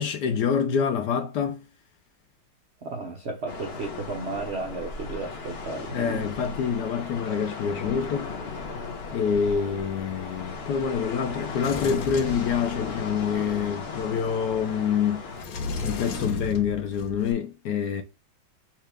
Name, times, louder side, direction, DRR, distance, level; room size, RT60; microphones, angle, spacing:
voice 1, 0.0-1.6 5.9-8.3 9.1-15.2 15.8-18.0, left 7 dB, 70° left, 1.0 m, -26 dB
voice 2, 2.8-6.2, right 3 dB, 75° right, 0.6 m, -34 dB
sound 1, 3.5-15.4, left 4 dB, 45° left, 0.9 m, -36 dB
Sliding door, 11.6-13.2 15.3-17.3, left 3 dB, 85° left, 1.7 m, -34 dB
4.5 x 2.4 x 4.6 m
omnidirectional pair, 2.2 m